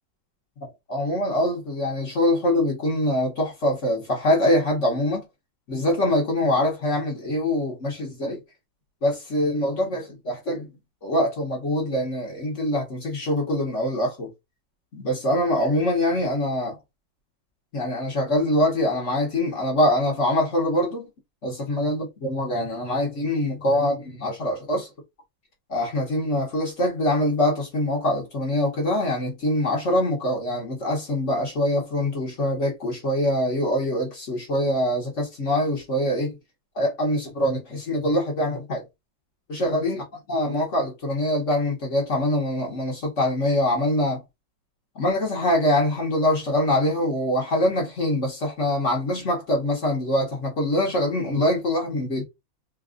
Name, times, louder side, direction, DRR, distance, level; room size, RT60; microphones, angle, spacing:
voice 1, 0.9-5.2 5.7-8.4 9.0-10.7 11.0-14.3 14.9-16.8 17.7-21.1 21.4-24.9 25.7-36.4 36.7-38.8 39.5-44.2 44.9-52.2, left 1 dB, 45° left, 1.3 m, -24 dB
3.4 x 2.4 x 3.7 m
omnidirectional pair, 2.1 m